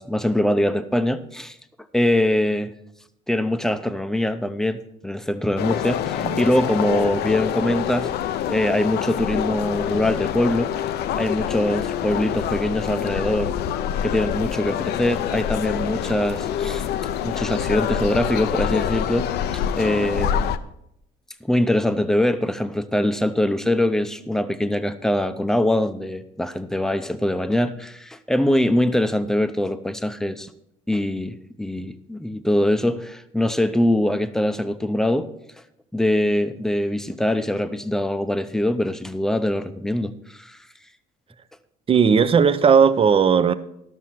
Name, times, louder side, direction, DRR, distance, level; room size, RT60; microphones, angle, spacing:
voice 1, 0.0-1.6 1.9-2.7 3.3-8.1 8.5-10.7 11.1-13.5 14.0-16.9 17.2-20.5 21.4-30.5 30.9-35.3 35.9-40.6, left 1 dB, 5° left, 0.7 m, -23 dB
sound 1, 5.6-20.6, left 9 dB, 75° left, 0.6 m, -26 dB
voice 2, 41.9-43.5, right 6 dB, 35° right, 0.6 m, -16 dB
12.5 x 6.3 x 5.8 m
cardioid pair, 110°, 17 cm